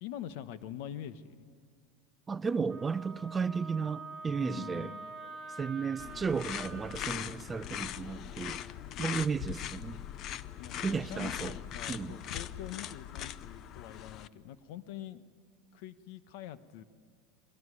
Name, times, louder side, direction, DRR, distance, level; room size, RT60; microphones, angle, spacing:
voice 1, 0.0-1.5 4.4-5.1 10.6-15.2 15.7-16.8, left 11 dB, 70° left, 1.2 m, -44 dB
voice 2, 2.3-4.9 5.6-8.6 9.0-10.0 10.8-11.5 11.9-12.2, right 5 dB, 15° right, 0.6 m, -34 dB
Wind instrument woodwind instrument, 2.7-7.1, right 3 dB, 5° left, 4.2 m, -46 dB
sound 1, 6.0-14.3, left 11 dB, 40° left, 0.7 m, -40 dB
22.0 x 18.0 x 9.9 m
supercardioid pair, 140°, 0 cm